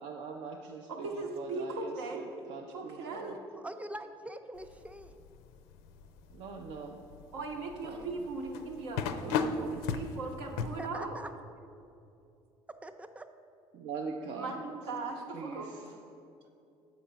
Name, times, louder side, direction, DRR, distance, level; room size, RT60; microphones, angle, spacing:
voice 1, 0.0-3.4 6.3-7.0 7.8-8.1 9.2-9.8 13.7-14.6 15.3-15.9, right 5 dB, 60° right, 2 dB, 0.5 m, -42 dB
voice 2, 0.9-2.3 2.7-3.4 7.3-9.5 9.9-11.2 14.4-15.7, right 3 dB, 80° right, 1 dB, 0.9 m, -38 dB
voice 3, 3.5-5.2 10.8-11.3 12.8-13.3, right 1 dB, 10° right, 8 dB, 0.5 m, -43 dB
sound 1, 4.6-10.9, left 6 dB, 75° left, 0.4 m, -37 dB
6.9 x 4.5 x 5.1 m, 2.6 s
hypercardioid pair, 70°, 13 cm